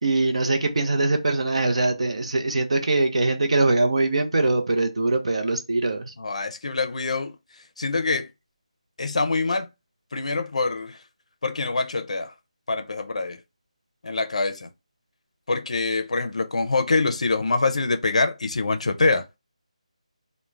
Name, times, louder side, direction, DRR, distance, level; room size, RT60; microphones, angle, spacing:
voice 1, 0.0-6.1, right 2 dB, 60° right, 0.5 m, -22 dB
voice 2, 6.2-7.4 7.8-8.3 9.0-9.7 10.1-11.0 11.4-12.3 12.7-13.4 14.0-14.7 15.5-19.4, left 3 dB, 65° left, 0.4 m, -25 dB
2.4 x 2.1 x 3.1 m
figure-of-eight pair, 175°, 4 cm